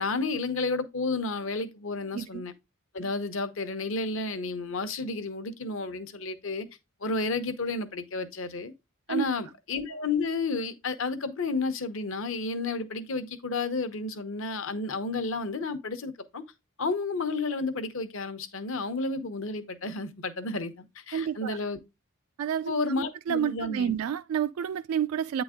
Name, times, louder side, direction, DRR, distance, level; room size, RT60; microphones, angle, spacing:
voice 1, 0.0-2.5 2.9-6.7 7.0-8.7 9.1-16.4 16.8-21.8 22.7-24.0, left 3 dB, 60° left, 0.8 m, -31 dB
voice 2, 21.1-21.6 22.4-25.4, right 8 dB, 80° right, 0.3 m, -30 dB
8.9 x 4.0 x 3.6 m
head